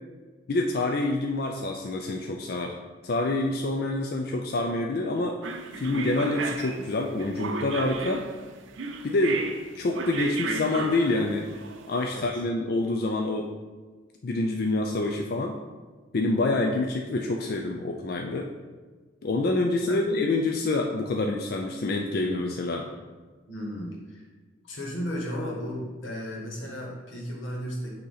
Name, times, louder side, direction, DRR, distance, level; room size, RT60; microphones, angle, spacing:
voice 1, 0.5-2.7 3.0-5.4 5.8-8.2 9.0-9.4 9.7-11.5 11.9-13.5 14.2-15.6 16.1-18.5 19.2-22.9, left 2 dB, 50° left, 2 dB, 0.4 m, -27 dB
sound 1, 5.4-12.1, right 4 dB, 80° right, 0.5 m, -34 dB
voice 2, 12.1-12.4 19.9-20.2 23.5-24.3 24.7-27.9, equal, 90° left, -2 dB, 1.5 m, -34 dB
6.4 x 2.9 x 5.6 m, 1.3 s
head